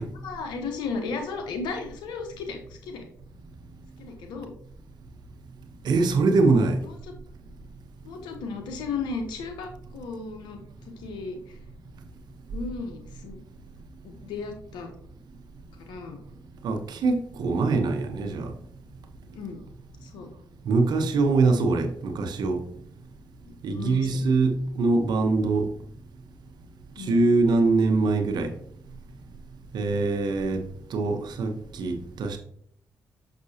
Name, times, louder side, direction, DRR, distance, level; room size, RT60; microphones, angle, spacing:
voice 1, 0.2-3.0 4.0-4.5 8.0-10.6 11.0-11.6 12.5-13.4 14.0-14.9 15.8-16.2 19.3-19.6 20.0-20.3 23.7-24.2 27.0-27.2, left 4 dB, 90° left, 1.1 m, -35 dB
voice 2, 5.8-6.8 16.6-18.5 20.6-22.6 23.6-25.7 27.1-28.5 29.7-32.4, right 3 dB, 75° right, 1.0 m, -23 dB
6.1 x 6.0 x 2.8 m
supercardioid pair, 60°, 7 cm